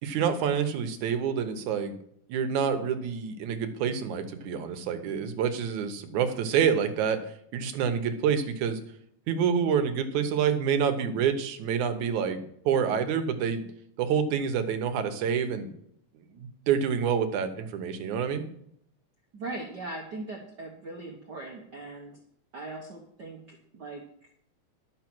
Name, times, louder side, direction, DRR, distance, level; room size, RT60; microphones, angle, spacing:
voice 1, 0.0-1.9 2.3-7.2 7.5-8.8 9.3-13.6 14.0-15.7 16.3-18.4, right 7 dB, 80° right, 8 dB, 2.4 m, -27 dB
voice 2, 19.3-22.2 22.5-24.3, right 2 dB, 50° right, 0 dB, 1.3 m, -40 dB
12.0 x 6.7 x 6.1 m, 0.70 s
omnidirectional pair, 3.4 m